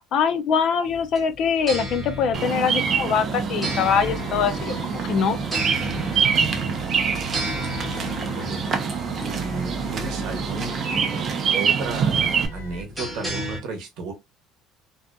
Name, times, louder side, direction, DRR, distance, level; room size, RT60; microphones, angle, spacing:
voice 1, 0.1-5.4, left 6 dB, 45° left, 0.3 m, -23 dB
sound 1, 0.9-13.6, equal, ahead, 0.8 m, -35 dB
Bird vocalization bird call bird song, 2.3-12.5, right 6 dB, 30° right, 0.4 m, -25 dB
sound 2, 3.9-12.8, right 1 dB, 75° left, 0.9 m, -40 dB
voice 2, 9.2-10.8 11.5-14.1, right 3 dB, 55° right, 0.8 m, -34 dB
2.6 x 2.4 x 2.2 m
cardioid pair, 170°, 0 cm